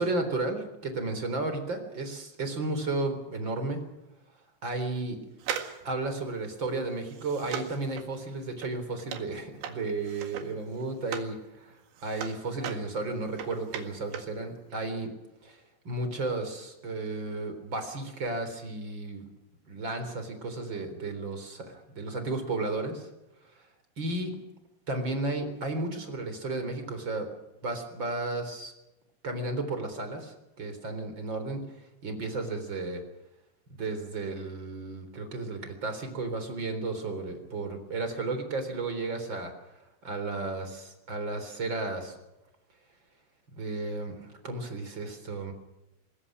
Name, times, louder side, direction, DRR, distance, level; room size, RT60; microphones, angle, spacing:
voice 1, 0.0-3.8 4.6-5.2 5.8-15.1 15.4-19.2 19.7-23.1 24.0-24.3 24.9-27.3 27.6-28.7 29.2-31.6 32.0-33.0 33.8-39.5 40.0-42.2 43.5-45.5, right 2 dB, 25° right, 7 dB, 3.7 m, -33 dB
sound 1, 5.4-11.4 11.7-14.4 14.6-14.7, right 8 dB, 65° right, 3.9 m, -39 dB
25.0 x 21.0 x 6.3 m, 0.98 s
omnidirectional pair, 5.9 m